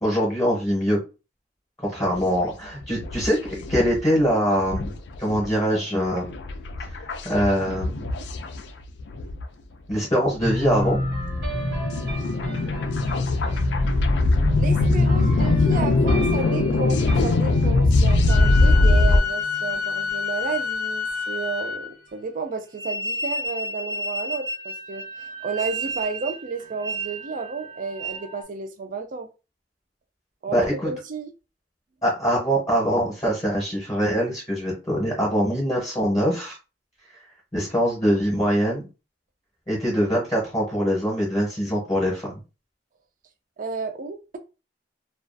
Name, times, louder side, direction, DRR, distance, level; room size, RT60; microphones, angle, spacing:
voice 1, 0.0-1.0 1.9-4.9 5.2-6.3 7.2-8.1 9.9-11.0 30.5-30.9 32.0-36.6 37.5-38.8 39.7-42.3, equal, 20° left, 0.8 m, -23 dB
sound 1, 2.0-2.4 2.8-4.0 4.3-4.4 4.6-9.4 9.9-10.0 10.4-19.2, left 2 dB, 70° left, 0.3 m, -22 dB
sound 2, 10.4-20.2, equal, 85° right, 1.1 m, -31 dB
voice 2, 14.6-29.3 30.4-31.3 43.6-44.4, right 4 dB, 45° right, 0.4 m, -32 dB
sound 3, 18.3-22.0 22.8-28.4, left 3 dB, 65° right, 0.7 m, -30 dB
2.3 x 2.3 x 2.5 m
head